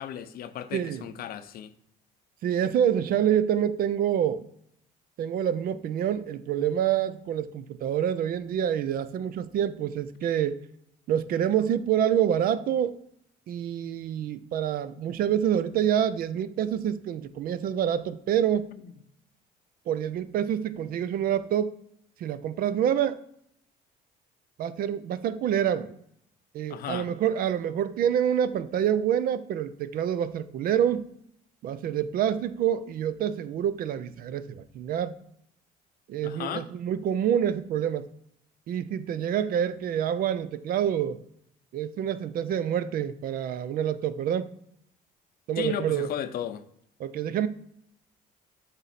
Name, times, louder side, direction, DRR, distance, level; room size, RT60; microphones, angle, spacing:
voice 1, 0.0-1.7 18.8-18.9 26.7-27.1 36.2-36.7 45.6-46.6, left 10 dB, 65° left, 0.6 m, -35 dB
voice 2, 0.7-1.1 2.4-4.5 5.2-10.6 11.1-13.0 13.5-18.7 19.9-21.8 22.2-23.2 24.6-25.9 26.5-31.1 31.6-35.1 36.1-38.1 38.7-41.2 41.7-44.5 45.5-46.1 47.0-47.5, right 9 dB, 60° right, 0.5 m, -27 dB
7.2 x 4.1 x 4.1 m
cardioid pair, 110°, 17 cm